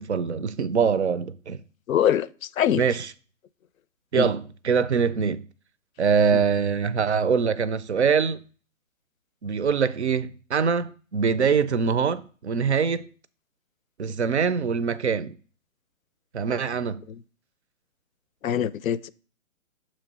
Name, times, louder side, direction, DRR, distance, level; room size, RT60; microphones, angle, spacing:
voice 1, 0.0-1.6 2.7-3.1 4.1-5.4 6.0-8.4 9.4-13.0 14.0-15.3 16.3-17.0, right 6 dB, 55° right, 0.5 m, -23 dB
voice 2, 1.9-2.3 2.6-2.8 4.1-4.3 6.3-6.4 18.4-19.1, left 10 dB, 75° left, 0.5 m, -23 dB
7.0 x 3.0 x 6.0 m
hypercardioid pair, 180°, 41 cm